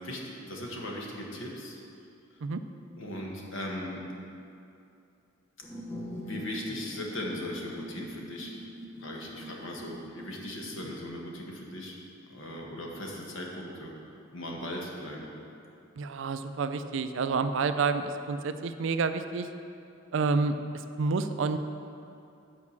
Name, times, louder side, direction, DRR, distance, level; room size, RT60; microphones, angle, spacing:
voice 1, 0.0-1.8 3.0-4.0 6.2-8.6 9.0-12.0 12.3-13.9 14.3-15.3, left 1 dB, 70° left, -1 dB, 1.4 m, -38 dB
sound 1, 5.6-11.1, equal, 15° left, 0.9 m, -43 dB
voice 2, 16.0-19.5 20.1-20.6 21.0-21.6, right 4 dB, 65° right, 10 dB, 0.4 m, -29 dB
8.4 x 4.8 x 7.1 m, 2.6 s
head